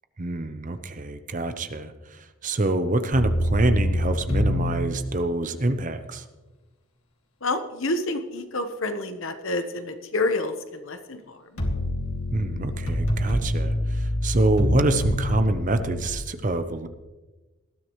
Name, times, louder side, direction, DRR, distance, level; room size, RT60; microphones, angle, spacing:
voice 1, 0.2-6.2 12.3-16.9, right 2 dB, 35° right, 9 dB, 0.7 m, -26 dB
sound 1, 3.1-4.8 11.6-16.1, left 1 dB, 85° left, 2.2 m, -25 dB
voice 2, 7.4-11.4, left 2 dB, 60° left, 8 dB, 1.1 m, -28 dB
19.5 x 13.5 x 3.1 m, 1.2 s
head